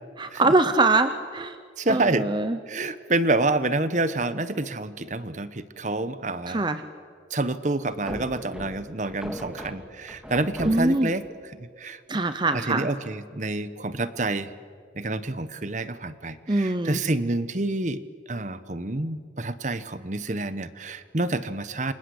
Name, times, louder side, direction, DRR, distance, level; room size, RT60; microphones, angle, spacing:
voice 1, 0.2-1.6 1.9-2.6 6.5-6.8 10.6-11.1 12.1-12.9 16.5-17.0, right 2 dB, 25° right, 9 dB, 0.9 m, -23 dB
voice 2, 1.8-2.3 2.7-6.6 7.3-12.0 12.5-14.5 15.0-18.0 18.3-21.9, right 2 dB, 40° right, 13 dB, 1.1 m, -28 dB
sound 1, 7.9-11.2, equal, 5° right, 2.6 m, -38 dB
28.5 x 26.0 x 8.0 m, 2.1 s
head